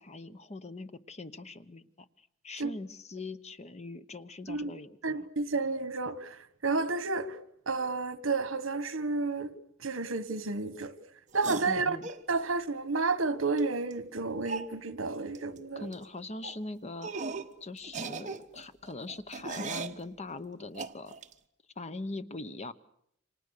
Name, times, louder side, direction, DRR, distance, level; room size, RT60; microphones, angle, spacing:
voice 1, 0.0-2.1 2.4-5.3 11.7-12.1 15.8-17.1 17.6-21.1 21.8-22.7, left 2 dB, 35° left, 1.0 m, -41 dB
voice 2, 5.0-7.4 7.6-9.5 9.8-10.9 11.3-12.0 12.3-15.9, right 3 dB, 70° right, 1.6 m, -31 dB
sound 1, 11.3-12.2 13.6-13.7 13.9-14.0 14.5-14.7 15.3-15.6 15.8-16.0 16.4-16.6 17.0-17.5 17.8-20.0 20.7-21.3, right 4 dB, 35° right, 1.4 m, -38 dB
29.0 x 26.0 x 6.7 m
head